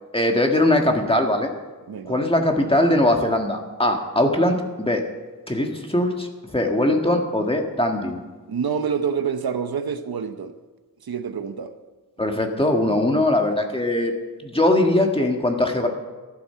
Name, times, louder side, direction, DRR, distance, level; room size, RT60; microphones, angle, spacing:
voice 1, 0.1-1.5 2.0-5.0 5.5-8.2 12.2-14.1 14.4-15.9, left 1 dB, 15° left, 3 dB, 1.7 m, -21 dB
voice 2, 1.9-2.2 8.5-10.5 11.0-11.7, right 6 dB, 80° right, 9 dB, 0.9 m, -27 dB
14.0 x 12.0 x 5.7 m, 1.3 s
wide cardioid pair, 100°, 37 cm